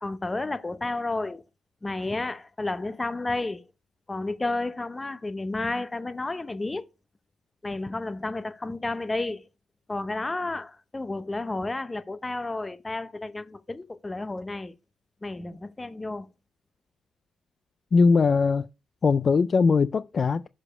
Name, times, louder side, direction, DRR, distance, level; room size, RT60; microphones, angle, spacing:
voice 1, 0.0-1.4 1.8-3.6 4.1-6.9 7.6-9.5 9.9-14.7 15.2-16.3, left 2 dB, 20° left, 0.7 m, -31 dB
voice 2, 17.9-18.7 19.0-20.5, left 4 dB, 40° left, 0.3 m, -20 dB
6.7 x 4.9 x 4.9 m
cardioid pair, 90°, 0 cm